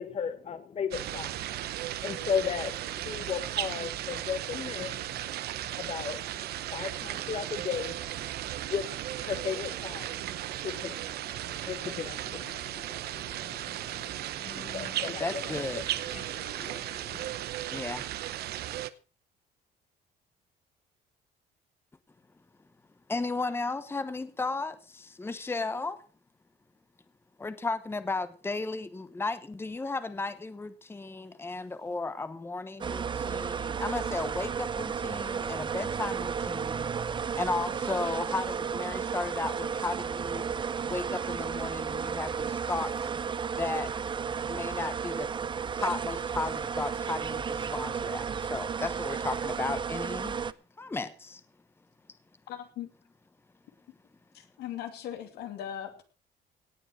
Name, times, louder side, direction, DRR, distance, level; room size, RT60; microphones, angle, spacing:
voice 1, 0.0-17.3, left 7 dB, 40° left, 10 dB, 1.0 m, -37 dB
sound 1, 0.9-18.9, right 13 dB, 70° right, 0.9 m, -36 dB
voice 2, 15.2-15.8 16.4-16.5 17.7-18.1 23.1-26.0 27.4-36.9 37.4-40.4 40.8-43.1 43.6-43.9 44.5-45.3 45.7-50.3 50.8-51.4, left 3 dB, 15° left, 12 dB, 1.1 m, -34 dB
sound 2, 32.8-50.5, right 6 dB, 30° right, 0.6 m, -33 dB
voice 3, 52.5-52.9 54.3-56.0, left 10 dB, 80° left, 7 dB, 2.6 m, -39 dB
18.0 x 7.2 x 6.3 m, 0.38 s
cardioid pair, 110°, 17 cm